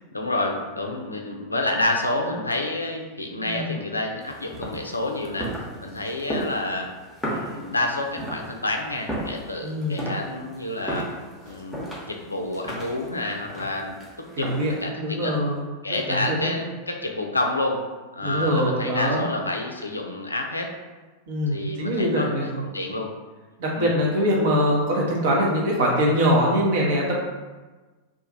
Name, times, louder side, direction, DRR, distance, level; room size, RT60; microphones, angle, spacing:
voice 1, 0.1-5.5 5.8-6.9 7.3-11.1 11.4-14.0 14.4-14.5 14.8-15.4 15.8-17.8 18.1-20.7 21.5-23.1 23.7-23.9, left 2 dB, 80° left, 2 dB, 0.4 m, -29 dB
voice 2, 3.4-3.7 9.6-10.0 14.4-15.7 16.1-16.5 18.2-19.3 21.3-22.6 23.6-27.1, equal, 55° right, -3 dB, 0.8 m, -23 dB
sound 1, 4.2-14.9, right 1 dB, 5° left, 0.8 m, -35 dB
2.5 x 2.4 x 3.8 m, 1.3 s
figure-of-eight pair, 90°, 0 cm